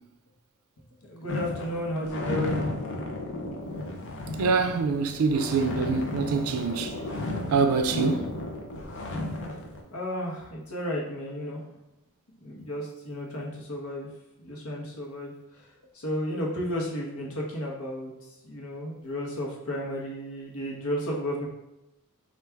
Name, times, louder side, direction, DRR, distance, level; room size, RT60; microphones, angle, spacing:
voice 1, 1.1-2.6 9.9-11.6 12.4-14.1 14.4-15.3 15.9-18.1 18.4-21.5, equal, 75° left, 1.0 m, -32 dB
sound 1, 1.3-9.8, left 2 dB, 55° left, 0.6 m, -34 dB
voice 2, 4.4-6.9 7.5-8.3, right 4 dB, 75° right, 0.4 m, -25 dB
4.6 x 2.5 x 3.4 m
head